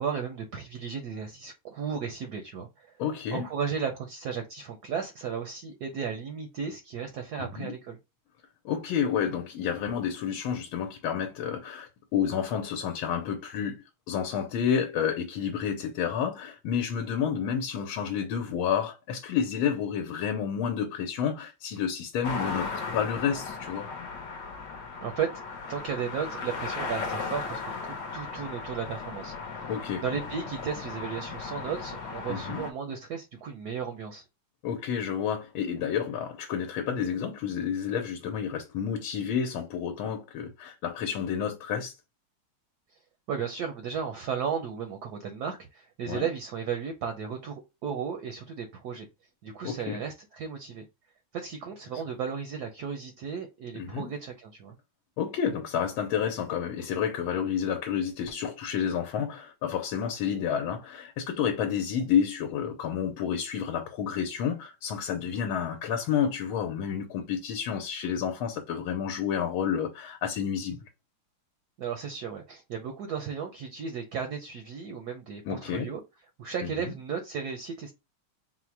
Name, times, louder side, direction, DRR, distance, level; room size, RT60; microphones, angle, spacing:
voice 1, 0.0-3.0 3.3-8.0 25.0-25.4 25.7-29.6 30.0-34.2 43.3-49.1 49.4-50.8 51.3-54.8 71.8-76.0 76.4-77.9, right 6 dB, 70° right, 1.0 m, -34 dB
voice 2, 3.0-3.4 7.4-7.7 8.6-23.9 29.7-30.0 32.3-32.6 34.6-41.9 46.1-46.3 49.6-50.0 53.7-54.1 55.2-70.9 75.5-75.9 76.6-76.9, left 8 dB, 85° left, 1.5 m, -30 dB
sound 1, 22.2-32.7, left 4 dB, 65° left, 1.3 m, -36 dB
4.2 x 2.1 x 4.5 m
omnidirectional pair, 2.2 m